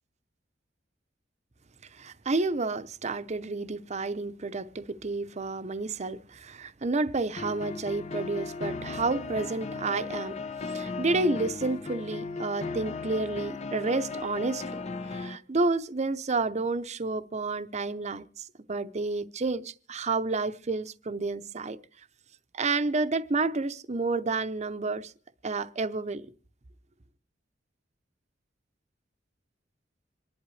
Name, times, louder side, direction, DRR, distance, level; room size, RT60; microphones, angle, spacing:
voice 1, 1.9-10.4 10.7-14.8 15.1-21.8 22.5-25.1 25.4-26.2, right 3 dB, 40° right, 0.7 m, -30 dB
sound 1, 7.4-15.4, left 4 dB, 35° left, 0.7 m, -36 dB
26.5 x 11.0 x 3.2 m
head